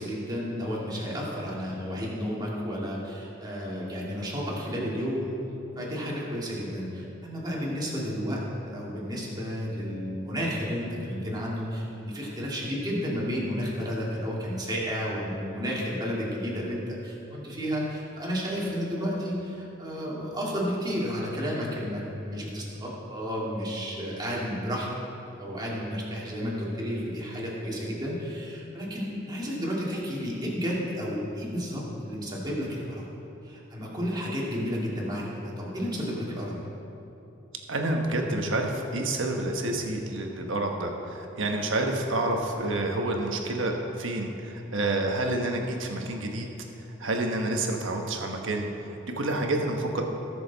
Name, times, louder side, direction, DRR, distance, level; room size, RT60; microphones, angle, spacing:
voice 1, 0.0-5.4 5.7-24.9 25.4-33.0 33.4-36.5, equal, 20° right, -5 dB, 2.4 m, -32 dB
voice 2, 37.7-46.5 47.0-48.7 49.2-50.0, right 2 dB, 70° right, 2 dB, 1.3 m, -28 dB
18.5 x 6.8 x 4.1 m, 2.9 s
head